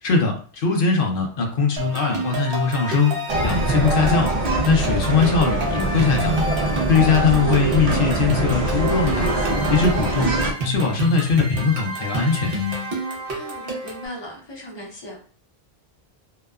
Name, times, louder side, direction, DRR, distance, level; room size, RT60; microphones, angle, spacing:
voice 1, 0.0-4.3 4.7-6.3 6.9-9.3 9.7-10.3 10.6-12.5, left 5 dB, 65° left, 1 dB, 0.7 m, -21 dB
sound 1, 1.8-14.1, right 1 dB, 65° right, 0.9 m, -29 dB
sound 2, 3.3-10.5, right 1 dB, 50° right, 0.5 m, -23 dB
voice 2, 7.2-7.6 13.3-15.2, equal, 30° left, -2 dB, 0.6 m, -37 dB
2.8 x 2.1 x 2.3 m, 0.43 s
omnidirectional pair, 1.1 m